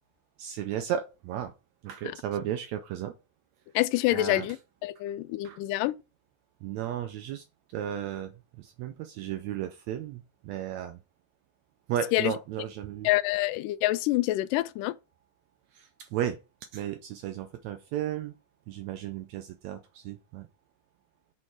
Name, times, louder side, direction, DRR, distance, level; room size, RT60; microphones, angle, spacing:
voice 1, 0.4-1.5 1.8-3.1 4.1-4.5 5.4-5.6 6.6-7.4 7.7-8.3 8.6-11.0 11.9-13.1 15.8-16.4 16.7-18.3 18.7-20.5, right 10 dB, 80° right, 1.6 m, -34 dB
voice 2, 3.8-4.6 4.8-6.0 12.1-12.3 13.0-15.0, left 16 dB, 90° left, 2.2 m, -26 dB
6.3 x 4.4 x 4.7 m
omnidirectional pair, 3.7 m